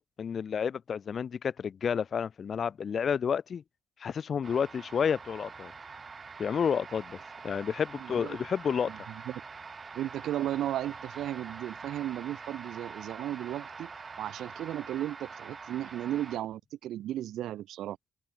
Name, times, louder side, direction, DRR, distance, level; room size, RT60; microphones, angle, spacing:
voice 1, 0.0-3.6 4.0-5.7 6.4-7.2 7.4-8.9, left 7 dB, 50° left, 0.9 m, -30 dB
sound 1, 4.4-16.4, right 5 dB, 35° right, 2.0 m, -45 dB
voice 2, 8.0-8.4 8.9-9.4 9.9-13.9 14.2-18.0, right 12 dB, 80° right, 0.4 m, -35 dB
open air
cardioid pair, 90°, 0 cm